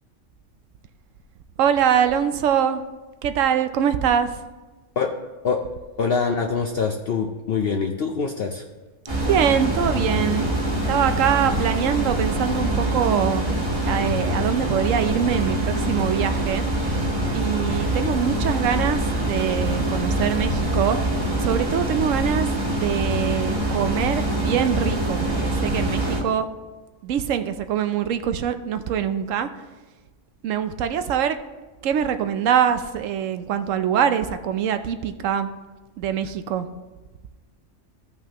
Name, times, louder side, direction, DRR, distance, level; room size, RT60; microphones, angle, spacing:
voice 1, 1.6-2.8 3.2-4.4 9.3-10.5 10.9-13.4 13.9-16.7 17.3-21.0 21.4-26.5 27.0-29.6 30.4-31.4 31.8-35.5 36.0-36.7, right 8 dB, 85° right, 10 dB, 1.0 m, -23 dB
voice 2, 6.0-8.6, left 5 dB, 60° left, 2 dB, 0.8 m, -24 dB
sound 1, 9.1-26.2, right 1 dB, 30° right, 1.5 m, -24 dB
15.0 x 5.7 x 2.9 m, 1.2 s
omnidirectional pair, 1.3 m